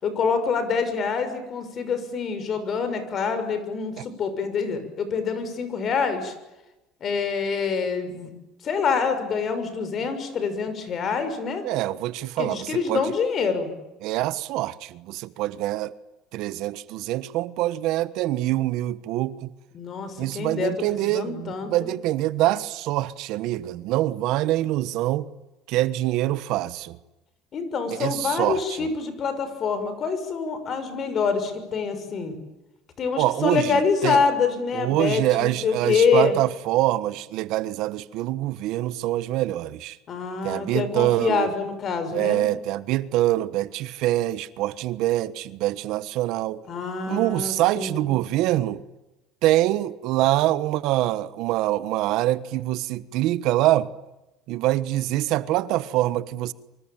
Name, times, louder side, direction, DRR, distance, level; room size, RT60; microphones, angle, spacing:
voice 1, 0.0-6.3 7.0-8.3 8.6-11.6 12.4-13.7 19.7-21.9 27.5-32.4 33.0-36.4 40.1-42.4 46.7-48.1, left 5 dB, 40° left, 6.5 m, -26 dB
voice 2, 11.6-13.0 14.0-15.9 16.3-19.5 20.2-25.3 25.7-27.0 28.0-28.9 33.2-34.2 34.7-40.0 40.4-41.5 42.1-46.6 47.1-48.8 49.4-53.9 54.5-56.5, right 15 dB, 70° right, 1.2 m, -25 dB
25.5 x 25.0 x 9.0 m
cardioid pair, 115°, 0 cm